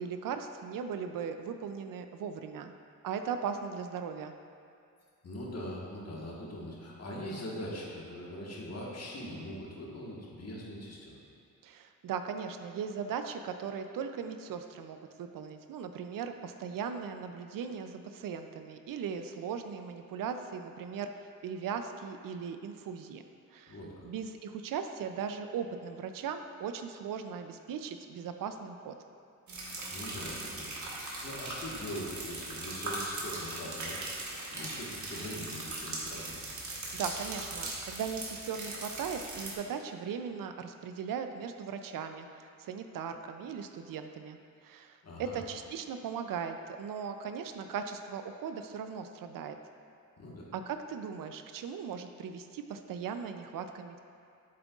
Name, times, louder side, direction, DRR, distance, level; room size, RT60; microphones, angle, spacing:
voice 1, 0.0-2.7 3.0-4.3 11.6-23.2 23.5-23.8 24.0-28.9 36.9-49.6 50.5-54.0, right 6 dB, 75° right, 7 dB, 0.5 m, -38 dB
voice 2, 5.2-11.2 23.7-24.1 29.9-36.4 45.0-45.4 50.2-50.4, left 1 dB, 50° left, -4 dB, 1.5 m, -42 dB
sound 1, 29.5-39.5, right 2 dB, 60° right, 1.4 m, -39 dB
7.6 x 7.4 x 2.4 m, 2.4 s
cardioid pair, 105°, 34 cm